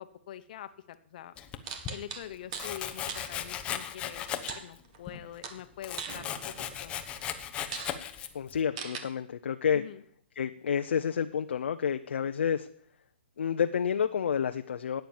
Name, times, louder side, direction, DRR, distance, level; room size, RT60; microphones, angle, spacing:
voice 1, 0.0-1.3 1.9-4.3 4.5-7.3 9.7-10.0, left 11 dB, 45° left, 10 dB, 1.1 m, -45 dB
Domestic sounds home sounds, 1.4-2.0 2.5-4.8 5.1-8.6, left 9 dB, 15° left, 0.9 m, -37 dB
sound 1, 1.6-2.8 3.1-3.3 4.5-5.1 5.4-6.8 7.3-7.4 7.7-8.0 8.8-9.0, right 6 dB, 35° right, 1.7 m, -40 dB
voice 2, 8.3-9.8 10.4-12.7 13.4-15.0, left 7 dB, 70° left, 7 dB, 0.7 m, -29 dB
13.5 x 9.2 x 7.2 m, 0.64 s
hypercardioid pair, 155°, 6 cm